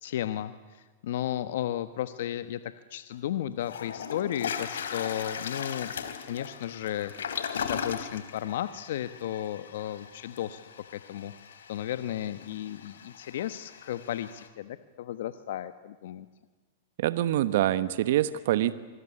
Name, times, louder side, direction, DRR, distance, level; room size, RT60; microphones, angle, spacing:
voice 1, 0.0-5.9 6.3-10.6 10.9-11.3 11.7-16.3, left 11 dB, 70° left, 12 dB, 1.1 m, -34 dB
Toilet flush, 3.1-3.2 3.7-14.5, left 7 dB, 85° left, 3.0 m, -38 dB
voice 2, 17.0-18.7, right 13 dB, 70° right, 14 dB, 1.1 m, -25 dB
26.5 x 21.0 x 9.9 m, 1.4 s
hypercardioid pair, 125°, 0 cm